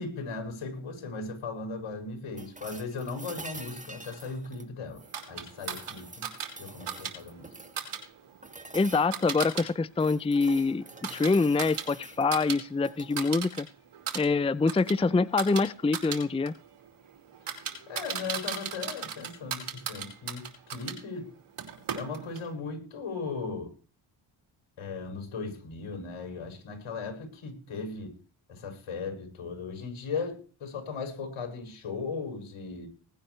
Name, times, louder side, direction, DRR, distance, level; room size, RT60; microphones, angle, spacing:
voice 1, 0.0-5.0 5.3-6.3 6.6-7.5 17.9-21.3 21.9-23.7 24.8-28.2 28.5-32.9, left 4 dB, 75° left, 3 dB, 6.9 m, -37 dB
sound 1, 2.4-5.2 5.6-7.8 8.4-9.2 9.7-12.3 12.8-13.2 15.2-15.3, right 2 dB, 15° right, 2.3 m, -46 dB
sound 2, 5.1-9.7 10.0-12.6 12.9-13.6 13.9-21.0 21.6-22.5, right 7 dB, 80° right, 4.9 m, -38 dB
voice 2, 8.7-13.7 14.1-16.5, left 4 dB, 10° left, 18 dB, 0.5 m, -25 dB
20.0 x 10.5 x 3.3 m, 0.38 s
cardioid pair, 55°, 49 cm